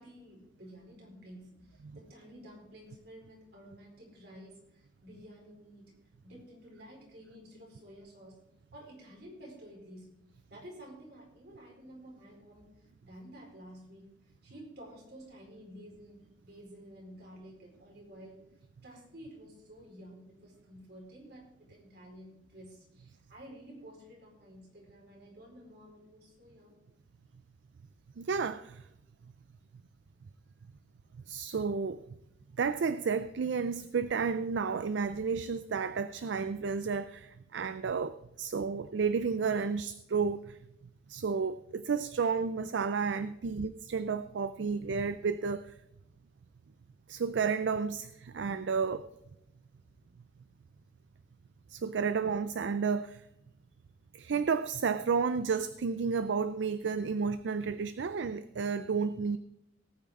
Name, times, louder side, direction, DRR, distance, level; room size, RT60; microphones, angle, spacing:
voice 1, 0.0-6.0 6.2-8.4 8.7-10.1 10.5-18.4 18.8-26.8, equal, 60° right, -1 dB, 4.6 m, -52 dB
voice 2, 28.2-28.8 31.3-32.0 32.6-40.6 41.1-45.7 47.1-49.0 51.7-53.2 54.1-59.4, right 5 dB, 80° right, 13 dB, 0.4 m, -31 dB
18.0 x 9.2 x 3.7 m, 0.84 s
head